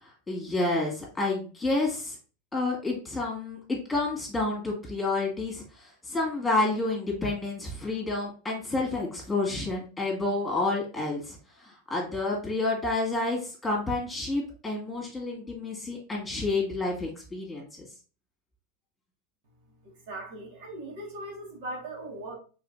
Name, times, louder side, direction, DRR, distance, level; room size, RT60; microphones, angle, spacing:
voice 1, 0.0-2.2 2.5-17.9, left 2 dB, 10° left, -2 dB, 2.3 m, -29 dB
voice 2, 19.8-22.3, right 1 dB, 65° right, -1 dB, 2.1 m, -39 dB
4.8 x 4.0 x 2.7 m, 0.36 s
hypercardioid pair, 100°, 0 cm